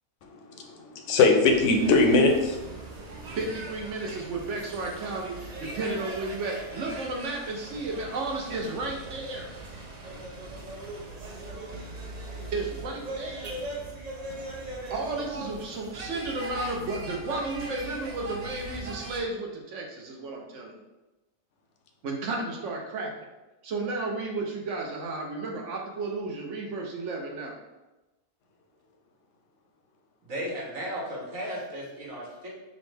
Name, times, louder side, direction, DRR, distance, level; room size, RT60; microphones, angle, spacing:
voice 1, 0.2-2.8 3.1-3.2, left 3 dB, 70° left, 3 dB, 0.9 m, -22 dB
sound 1, 1.5-19.2, right 2 dB, 45° right, 0.5 m, -40 dB
voice 2, 3.3-9.5 12.5-13.5 14.9-20.7 22.0-23.1 23.6-27.6, right 3 dB, 70° right, 1 dB, 1.0 m, -33 dB
voice 3, 30.2-32.5, equal, 85° right, -5 dB, 1.7 m, -35 dB
5.4 x 2.1 x 3.3 m, 1.1 s
omnidirectional pair, 1.4 m